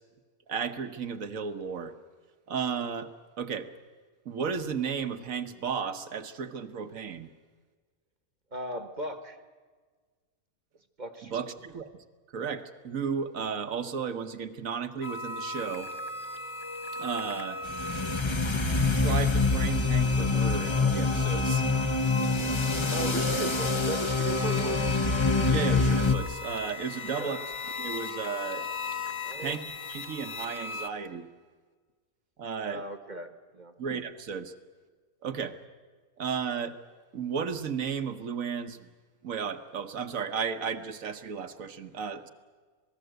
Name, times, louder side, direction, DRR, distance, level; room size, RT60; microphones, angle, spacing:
voice 1, 0.5-1.9 2.5-3.1 3.4-3.7 4.2-7.3 11.2-11.9 12.3-15.9 17.0-17.6 19.0-21.7 25.5-27.4 27.8-28.7 29.4-29.6 29.9-31.3 32.4-32.8 33.8-34.5 35.2-35.6 36.2-36.8 37.1-38.9 39.2-42.3, right 6 dB, 65° right, 10 dB, 1.5 m, -34 dB
voice 2, 8.5-9.4 11.0-11.4 22.9-24.8 27.1-27.4 29.2-29.6 32.6-33.7, right 2 dB, 30° right, 9 dB, 1.3 m, -37 dB
sound 1, 15.0-30.9, left 3 dB, 45° left, 1.7 m, -38 dB
sound 2, 17.7-26.2, left 3 dB, 25° left, 0.8 m, -26 dB
26.5 x 19.0 x 8.0 m, 1.5 s
omnidirectional pair, 1.5 m